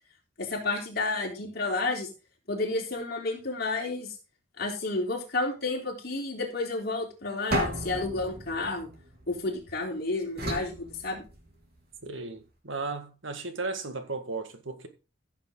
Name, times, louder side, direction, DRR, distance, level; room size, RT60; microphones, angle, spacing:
voice 1, 0.4-2.1 2.5-4.1 4.6-8.9 9.3-11.2, left 2 dB, 50° left, 3.7 m, -31 dB
sound 1, 7.5-9.7 10.4-11.8, equal, 50° right, 3.7 m, -34 dB
voice 2, 12.0-14.9, right 3 dB, 70° right, 1.8 m, -35 dB
14.5 x 7.5 x 3.8 m
head